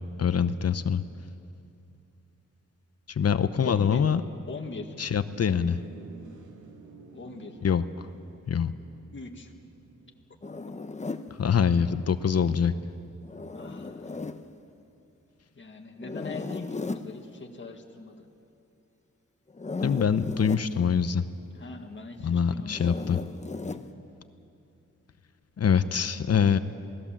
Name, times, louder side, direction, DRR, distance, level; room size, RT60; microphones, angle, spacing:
voice 1, 0.2-1.0 3.1-4.2 5.0-5.8 7.6-8.1 8.5-8.7 11.4-12.7 19.8-21.2 22.2-23.2 25.6-26.6, left 7 dB, 55° left, 12 dB, 0.8 m, -24 dB
voice 2, 3.7-4.0 4.5-4.9 7.1-7.6 9.1-9.5 12.2-12.3 13.5-14.0 15.6-18.3 21.5-23.0 23.6-23.9, left 4 dB, 40° left, 2 dB, 1.9 m, -41 dB
sound 1, 5.1-14.7, right 3 dB, 80° right, 2.8 m, -52 dB
Zipper (clothing), 10.4-11.3 13.2-14.4 16.0-17.1 19.5-20.7 22.7-23.9, left 3 dB, 25° left, 0.9 m, -36 dB
27.5 x 19.0 x 7.4 m, 2.7 s
wide cardioid pair, 105°, 29 cm